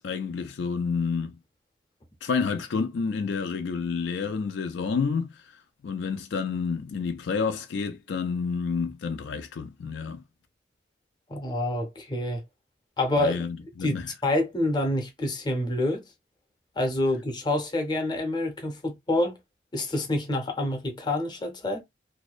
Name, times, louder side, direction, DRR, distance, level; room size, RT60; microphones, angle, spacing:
voice 1, 0.0-1.4 2.2-5.4 5.8-10.2 13.2-14.1, left 5 dB, 70° left, 0.4 m, -29 dB
voice 2, 11.3-12.4 13.0-13.4 13.8-13.9 14.2-16.0 16.8-19.4 19.7-21.8, left 1 dB, 25° left, 0.7 m, -27 dB
2.6 x 2.1 x 2.4 m
head